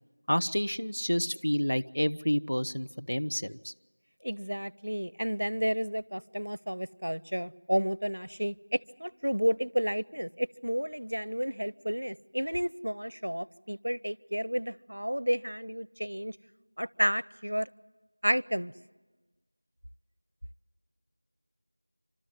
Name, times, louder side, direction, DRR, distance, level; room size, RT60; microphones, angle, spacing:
voice 1, 0.3-3.7, equal, 85° left, 0.8 m, -29 dB
voice 2, 4.2-16.4 16.8-17.7 18.2-18.7, equal, 85° right, 0.6 m, -31 dB
29.5 x 13.0 x 9.6 m
figure-of-eight pair, 180°, 0 cm